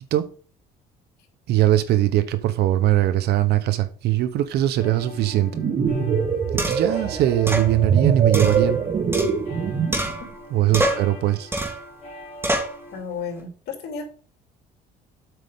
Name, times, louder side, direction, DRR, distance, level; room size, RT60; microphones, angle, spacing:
voice 1, 1.5-5.6 6.5-8.8 10.5-11.5, right 13 dB, 75° right, 1.0 m, -21 dB
sound 1, 4.8-13.0, equal, 45° left, 3.8 m, -42 dB
sound 2, 5.3-10.1, right 6 dB, 40° right, 1.6 m, -23 dB
sound 3, 5.9-6.0 6.6-7.0 7.5-7.7 8.3-9.6 9.9-10.4 10.7-11.1 11.5-11.9 12.4-12.8, right 1 dB, 15° right, 2.6 m, -26 dB
voice 2, 12.9-14.0, left 5 dB, 70° left, 3.1 m, -32 dB
8.2 x 5.3 x 5.3 m
cardioid pair, 110°, 17 cm